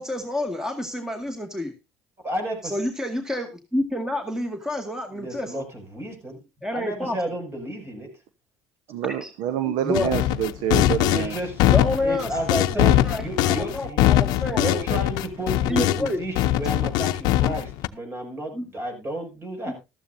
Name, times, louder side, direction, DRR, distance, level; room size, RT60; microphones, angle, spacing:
voice 1, 0.0-1.7 2.6-5.6 6.6-7.2 9.2-9.3 9.7-10.1 11.7-15.0 15.7-16.2 18.5-18.6 19.7-19.8, left 1 dB, 5° right, 2.1 m, -29 dB
voice 2, 2.2-2.8 5.1-6.4 6.7-8.1 11.1-11.6 12.0-19.7, right 1 dB, 35° right, 6.6 m, -32 dB
voice 3, 8.9-11.3, right 10 dB, 75° right, 1.0 m, -27 dB
sound 1, 9.9-16.1 16.4-17.9, left 14 dB, 70° left, 0.6 m, -21 dB
14.0 x 13.5 x 2.7 m
supercardioid pair, 80°, 7 cm